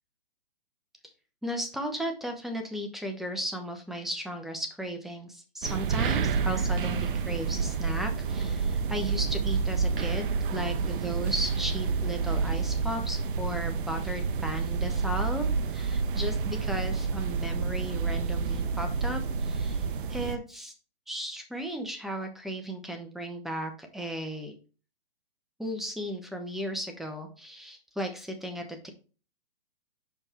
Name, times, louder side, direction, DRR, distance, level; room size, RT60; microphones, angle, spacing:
voice 1, 1.4-15.5 15.7-20.7 21.1-24.5 25.6-28.9, equal, ahead, 4 dB, 0.9 m, -35 dB
sound 1, 5.6-20.4, right 5 dB, 60° right, 0.8 m, -29 dB
7.2 x 5.2 x 3.0 m, 0.35 s
hypercardioid pair, 145°, 30 cm